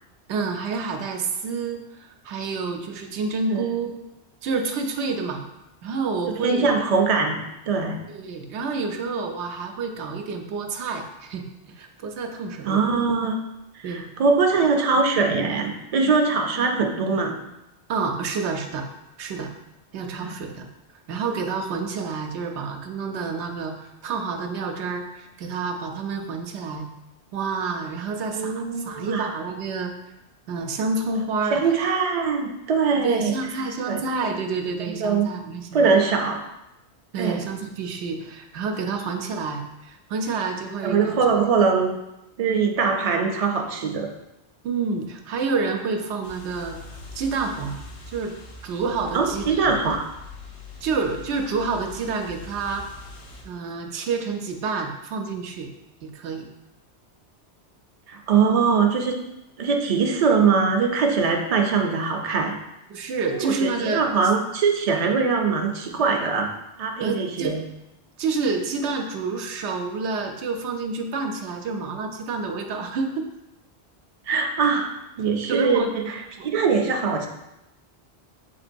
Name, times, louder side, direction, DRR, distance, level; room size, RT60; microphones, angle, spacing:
voice 1, 0.3-4.0 4.4-5.4 5.8-6.7 8.1-11.4 11.8-12.8 13.8-14.0 17.9-18.9 19.2-19.5 19.9-20.7 21.1-26.9 27.3-30.1 30.5-31.7 33.0-36.0 37.1-41.5 44.6-46.8 47.1-48.3 48.6-49.7 50.8-52.8 53.4-55.7 56.0-56.5 62.9-64.0 67.0-67.5 68.2-73.2 75.5-75.9, right 4 dB, 85° right, 4 dB, 0.9 m, -28 dB
voice 2, 6.4-8.0 12.6-13.4 13.8-17.4 20.2-20.3 28.3-29.3 31.5-33.3 33.9-34.0 35.0-35.3 35.7-36.4 37.2-37.4 40.8-41.9 42.4-44.1 49.1-50.0 58.1-59.2 59.6-62.6 63.4-66.5 66.8-67.6 74.3-74.9 75.2-77.3, right 5 dB, 50° right, 3 dB, 0.4 m, -22 dB
sound 1, 46.2-53.4, left 3 dB, 85° left, 1.0 m, -42 dB
6.6 x 2.9 x 2.5 m, 0.91 s
omnidirectional pair, 1.1 m